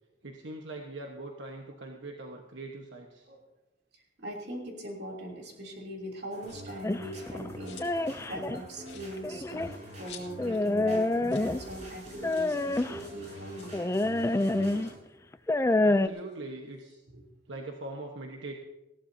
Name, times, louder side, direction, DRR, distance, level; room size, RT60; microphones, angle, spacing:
voice 1, 0.2-3.3 15.8-17.0 17.5-18.5, right 2 dB, 85° right, 2 dB, 1.3 m, -42 dB
voice 2, 3.9-13.9 14.5-14.7 17.1-17.2, right 1 dB, 65° right, 0 dB, 3.2 m, -41 dB
sound 1, 6.3-14.9, equal, 40° right, 5.7 m, -46 dB
sound 2, 6.4-6.8 7.3-8.1 8.4-8.5 8.8-10.6 10.9-11.0 11.2-11.5 11.8-11.9 12.3-12.6 13.4-15.1 15.5-17.0, left 9 dB, 70° left, 2.3 m, -53 dB
sound 3, 6.8-8.6 9.2-9.7 10.4-11.8 12.2-13.0 13.7-14.9 15.3-16.1, left 2 dB, 15° left, 0.4 m, -27 dB
19.5 x 15.0 x 2.8 m, 1.0 s
head